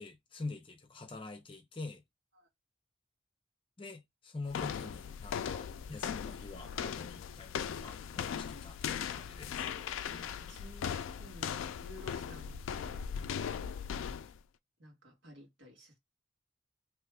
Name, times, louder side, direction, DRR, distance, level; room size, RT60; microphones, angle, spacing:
voice 1, 0.0-2.0 3.8-9.7, left 3 dB, 25° left, 0.6 m, -45 dB
sound 1, 4.5-14.4, left 7 dB, 90° left, 0.3 m, -39 dB
voice 2, 10.1-13.0 14.8-16.0, left 1 dB, 75° right, 1.6 m, -54 dB
3.0 x 2.3 x 3.3 m
head